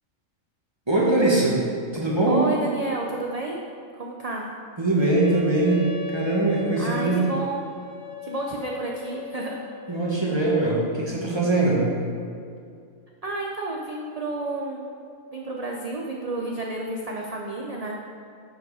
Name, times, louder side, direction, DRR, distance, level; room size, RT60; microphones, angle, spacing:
voice 1, 0.9-1.7 1.9-2.5 4.8-7.2 9.9-11.9, right 2 dB, 20° right, -5 dB, 1.5 m, -22 dB
voice 2, 2.3-3.6 4.0-4.5 6.8-7.6 8.2-9.6 13.2-14.9 15.3-17.9, right 2 dB, 40° right, -1 dB, 0.6 m, -30 dB
Wind instrument woodwind instrument, 5.0-10.0, left 6 dB, 55° right, 1.4 m, -38 dB
11.0 x 4.8 x 4.9 m, 2.4 s
omnidirectional pair, 1.4 m